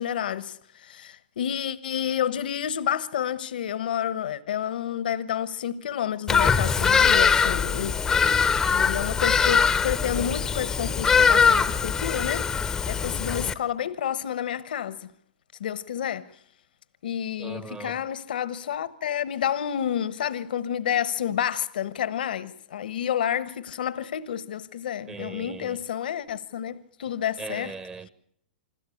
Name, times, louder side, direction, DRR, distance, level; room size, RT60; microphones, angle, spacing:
voice 1, 0.0-7.9 8.7-15.1 15.6-16.3 17.0-27.7, left 9 dB, 75° left, 1.1 m, -30 dB
Bird vocalization bird call bird song, 6.3-13.5, left 6 dB, 10° left, 0.8 m, -22 dB
voice 2, 8.1-8.5 17.4-18.0 25.1-25.8 27.4-28.1, right 4 dB, 15° right, 1.0 m, -38 dB
26.5 x 13.5 x 8.5 m
hypercardioid pair, 150°, 5 cm